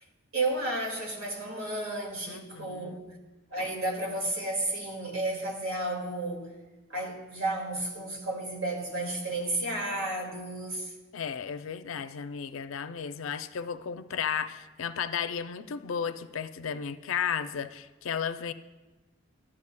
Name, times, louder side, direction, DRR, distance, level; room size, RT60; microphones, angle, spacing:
voice 1, 0.3-3.2 3.5-6.5 6.9-10.9, right 2 dB, 80° right, 0 dB, 2.0 m, -32 dB
voice 2, 2.3-3.0 11.1-18.5, left 7 dB, 75° left, 11 dB, 0.4 m, -34 dB
13.5 x 9.7 x 2.2 m, 1.2 s
head